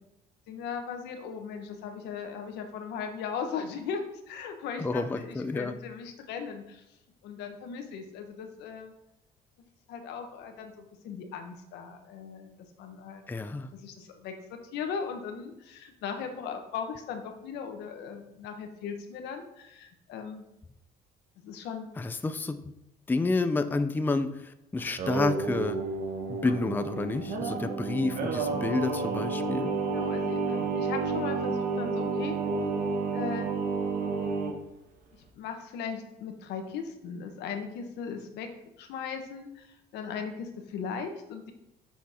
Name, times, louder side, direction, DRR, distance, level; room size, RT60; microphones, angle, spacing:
voice 1, 0.5-6.8 7.2-8.9 9.9-20.4 21.4-21.9 29.8-32.4 33.1-33.5 35.1-38.5 38.8-41.5, left 6 dB, 85° left, 5 dB, 1.2 m, -38 dB
voice 2, 4.8-5.7 13.3-13.7 22.0-22.6 23.1-25.8 26.3-29.7, left 3 dB, 10° left, 8 dB, 0.4 m, -29 dB
Singing, 24.8-34.5, right 4 dB, 55° right, 1.4 m, -30 dB
6.3 x 5.9 x 4.3 m, 0.86 s
cardioid pair, 110°, 17 cm